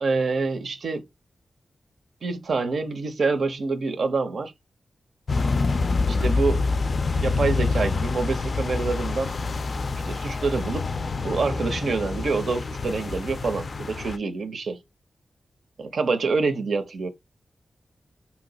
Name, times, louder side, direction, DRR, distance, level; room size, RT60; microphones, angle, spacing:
voice 1, 0.0-1.0 2.2-4.5 6.1-6.7 7.2-9.4 10.0-10.9 11.2-14.8 15.8-17.1, right 4 dB, 70° right, 0.6 m, -26 dB
sound 1, 5.3-14.2, left 3 dB, 50° left, 0.3 m, -26 dB
2.8 x 2.2 x 4.0 m
wide cardioid pair, 105°, 0 cm